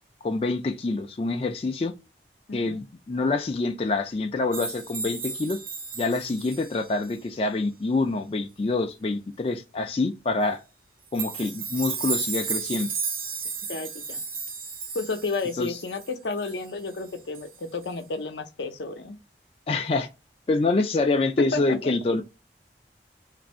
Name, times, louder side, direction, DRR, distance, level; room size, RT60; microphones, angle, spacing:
voice 1, 0.2-1.9 2.5-5.6 6.0-10.6 11.1-12.9 15.6-15.8 19.7-20.1 20.5-22.2, left 3 dB, 30° left, 0.3 m, -26 dB
voice 2, 2.5-2.8 13.7-14.2 14.9-19.2 21.4-21.9, left 3 dB, 80° left, 0.6 m, -31 dB
sound 1, 4.5-7.1 11.1-17.1 17.3-17.6 17.8-17.9, right 5 dB, 50° right, 0.6 m, -34 dB
2.6 x 2.5 x 4.2 m
head